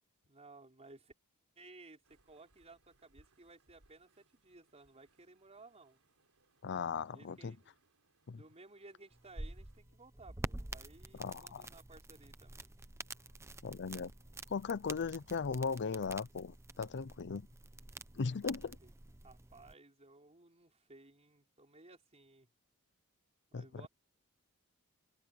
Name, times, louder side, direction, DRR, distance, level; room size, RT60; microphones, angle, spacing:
voice 1, 0.3-1.1 1.6-6.0 7.1-7.7 8.3-12.7 18.8-18.9 19.2-22.5 23.5-23.9, right 3 dB, 30° right, 4.7 m, -58 dB
sound 1, 2.0-9.8, right 2 dB, 70° right, 3.9 m, -73 dB
voice 2, 6.6-7.6 8.3-8.4 11.2-11.6 13.6-14.1 14.5-17.5 18.1-18.8 23.5-23.9, left 5 dB, 50° left, 0.5 m, -38 dB
sound 2, 9.1-19.7, right 2 dB, 10° right, 0.6 m, -48 dB
sound 3, 9.8-10.0 10.3-10.5 11.5-12.3 12.9-13.4 13.7-16.1, left 1 dB, 75° left, 5.9 m, -75 dB
head